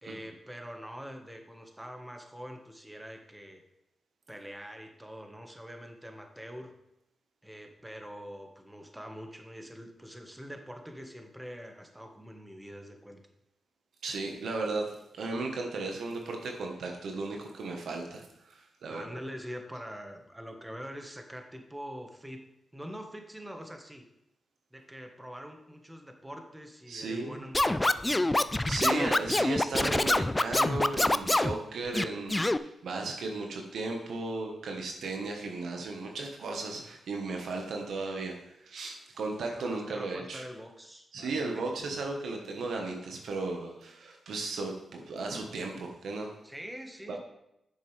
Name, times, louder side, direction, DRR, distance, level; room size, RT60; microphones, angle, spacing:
voice 1, 0.0-3.6 4.3-6.8 7.4-13.2 18.9-22.5 22.7-24.0 24.7-28.7 31.6-31.9 35.3-35.5 39.4-41.7 46.4-47.2, equal, 10° right, 4 dB, 1.5 m, -44 dB
voice 2, 14.0-19.2 26.9-27.4 28.7-38.3 38.6-40.4 41.1-46.3 47.1-47.2, right 3 dB, 75° right, 2 dB, 1.4 m, -35 dB
Scratching (performance technique), 27.5-31.5 31.9-32.6, left 2 dB, 20° left, 0.4 m, -25 dB
9.7 x 7.1 x 3.4 m, 0.83 s
supercardioid pair, 45°, 0 cm